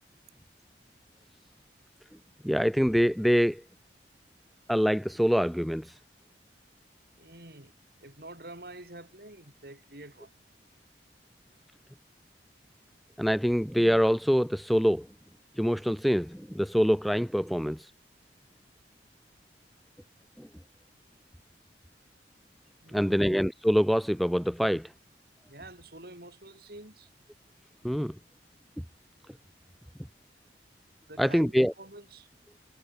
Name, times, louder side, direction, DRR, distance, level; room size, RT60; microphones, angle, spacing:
voice 1, 2.4-3.6 4.7-5.9 13.2-15.1 15.6-17.8 20.4-20.5 22.9-24.9 27.8-28.1 31.2-31.7, equal, ahead, 0.5 m, -25 dB
voice 2, 7.2-7.7 8.0-10.3 22.8-23.3 25.5-27.1 31.1-32.3, right 2 dB, 60° right, 6.5 m, -47 dB
head